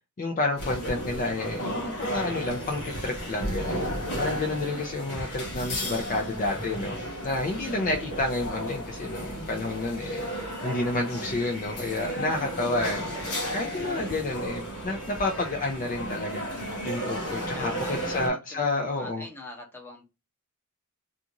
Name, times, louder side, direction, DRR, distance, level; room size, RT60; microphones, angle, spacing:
voice 1, 0.2-3.9 4.2-7.0 7.2-13.1 13.5-16.4 16.8-19.2, left 2 dB, 35° left, 0.4 m, -30 dB
sound 1, 0.6-18.3, equal, 65° left, 1.0 m, -33 dB
voice 2, 17.5-20.0, left 2 dB, 10° left, 0.8 m, -43 dB
2.5 x 2.5 x 2.8 m
head